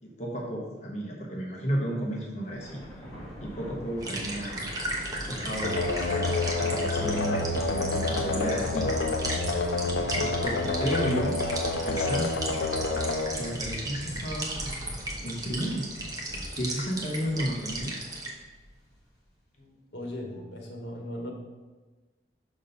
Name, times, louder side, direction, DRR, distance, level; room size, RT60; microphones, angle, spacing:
voice 1, 0.0-2.8 3.4-4.7 5.3-9.0 10.1-11.4 11.8-12.4 13.4-14.8 15.2-15.9 16.5-17.9, equal, 40° left, -2 dB, 1.0 m, -33 dB
Thunder, 2.4-19.0, equal, 20° left, 2.3 m, -42 dB
sound 1, 4.0-18.3, right 2 dB, 20° right, 0.9 m, -36 dB
sound 2, 5.6-14.3, left 3 dB, 90° left, 0.6 m, -29 dB
voice 2, 19.6-21.3, left 1 dB, 70° left, 1 dB, 1.3 m, -38 dB
5.9 x 4.0 x 5.5 m, 1.2 s
head